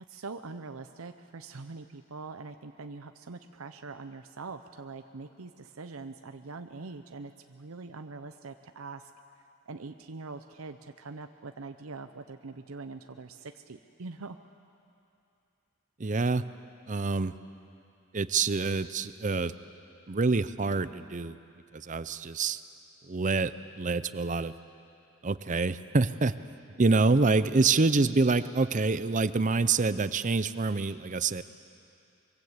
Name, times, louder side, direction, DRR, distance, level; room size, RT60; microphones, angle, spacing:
voice 1, 0.0-9.1 9.7-14.4, right 3 dB, 80° right, 8 dB, 0.7 m, -43 dB
voice 2, 16.0-16.4 16.9-17.3 18.1-19.5 20.1-21.4 21.7-22.6 23.0-24.5 25.2-26.3 26.8-31.4, right 3 dB, 35° right, 14 dB, 0.6 m, -26 dB
24.5 x 23.0 x 8.1 m, 2.7 s
head